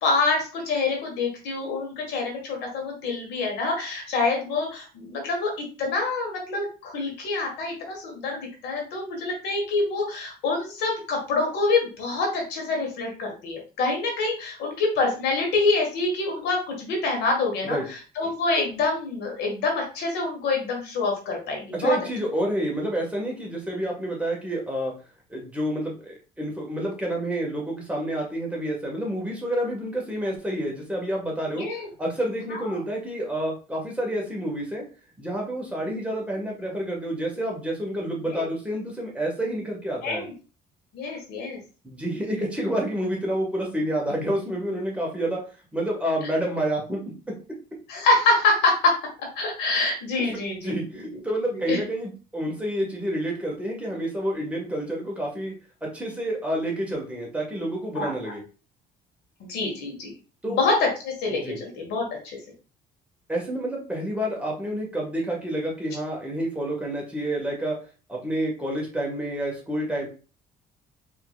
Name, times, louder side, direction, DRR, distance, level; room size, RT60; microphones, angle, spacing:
voice 1, 0.0-5.5 5.8-22.0 31.5-31.9 32.5-32.6 38.3-38.4 40.0-40.3 40.9-41.6 47.9-49.0 49.4-50.8 51.1-51.2 51.5-51.8 58.0-58.3 59.4-60.1 60.5-62.4, left 3 dB, 80° left, 0 dB, 1.8 m, -26 dB
voice 2, 21.7-24.9 25.3-31.7 32.0-34.8 35.2-40.3 41.8-45.4 45.7-47.0 47.3-47.4 50.2-50.3 50.6-55.5 55.8-58.4 60.4-60.6 61.3-61.6 63.3-67.8 68.1-70.1, right 1 dB, 5° right, -2 dB, 1.6 m, -29 dB
4.4 x 3.7 x 2.4 m, 0.35 s
cardioid pair, 110°, 17 cm